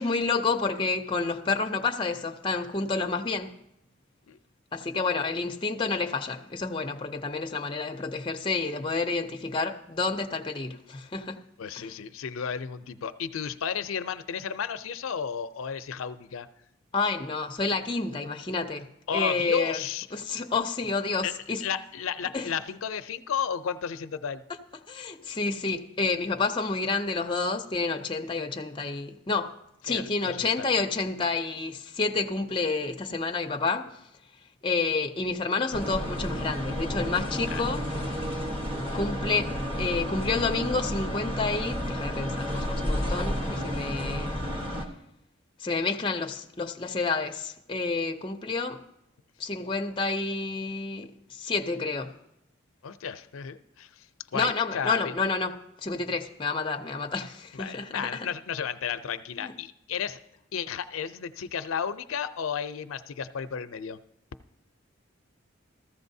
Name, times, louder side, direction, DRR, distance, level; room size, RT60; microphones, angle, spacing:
voice 1, 0.0-3.5 4.7-11.4 11.8-11.9 16.9-19.8 20.1-21.6 22.3-22.5 24.9-29.5 29.8-33.9 34.6-37.8 38.9-39.5 39.8-44.4 45.6-48.8 49.4-52.2 54.3-58.3 59.4-59.5, left 4 dB, 25° left, 0.5 m, -29 dB
voice 2, 11.6-16.5 19.1-20.1 21.2-21.3 21.6-24.4 29.9-30.8 37.5-37.6 52.8-54.1 54.3-55.1 57.5-60.2 60.5-64.0, left 7 dB, 80° left, 0.4 m, -33 dB
sound 1, 35.7-44.8, equal, 25° right, 1.1 m, -31 dB
14.5 x 13.5 x 2.7 m
head